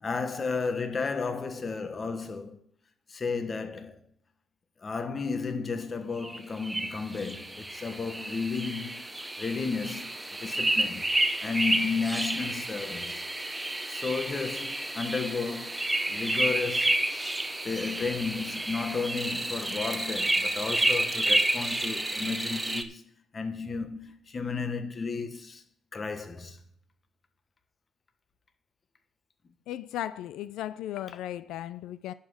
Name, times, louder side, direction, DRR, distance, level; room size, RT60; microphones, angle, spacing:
voice 1, 0.0-2.6 3.1-4.0 4.8-9.1 9.4-11.0 11.4-13.2 13.9-17.1 17.6-23.0 23.3-25.6 25.9-26.6, left 4 dB, 35° left, 1.4 m, -33 dB
sound 1, 6.2-22.8, right 1 dB, 10° right, 0.9 m, -30 dB
voice 2, 29.7-32.1, left 12 dB, 90° left, 0.4 m, -36 dB
11.0 x 5.8 x 6.4 m
cardioid pair, 90°, 0 cm